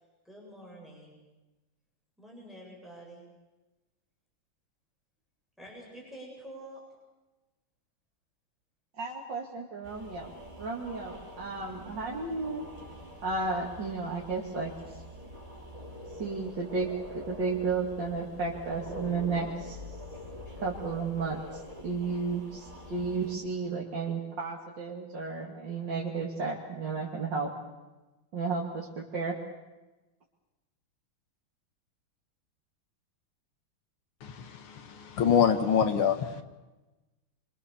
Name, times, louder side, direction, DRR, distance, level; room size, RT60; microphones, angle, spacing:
voice 1, 0.2-1.2 2.2-3.2 5.6-6.8, right 1 dB, ahead, -3 dB, 7.9 m, -47 dB
voice 2, 9.0-10.3 10.6-12.6 13.2-15.0 16.1-20.0 20.6-27.5 28.3-29.4, right 4 dB, 60° right, -4 dB, 3.3 m, -33 dB
sound 1, 9.8-23.4, left 1 dB, 15° right, 5.7 m, -45 dB
voice 3, 34.2-36.4, left 7 dB, 85° left, 7 dB, 2.4 m, -26 dB
27.5 x 24.5 x 7.1 m, 1.1 s
omnidirectional pair, 2.3 m